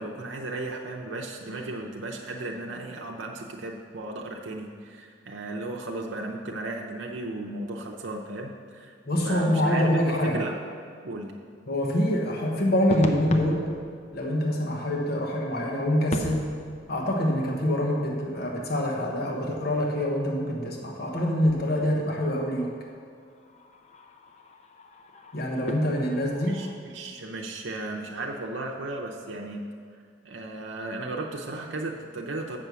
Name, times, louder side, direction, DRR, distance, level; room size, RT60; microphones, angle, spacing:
voice 1, 0.0-8.9 9.2-10.6 11.0-11.3 26.5-29.6 30.2-32.6, right 2 dB, 80° right, 0 dB, 0.7 m, -35 dB
voice 2, 9.1-10.4 11.7-13.7 14.1-16.5 16.9-22.7 25.3-26.6, equal, 60° left, -1 dB, 1.2 m, -25 dB
sound 1, 12.9-18.6 19.0-19.1 20.8-21.1 21.4-26.8, left 1 dB, 40° left, 0.6 m, -39 dB
7.7 x 6.1 x 6.8 m, 2.2 s
head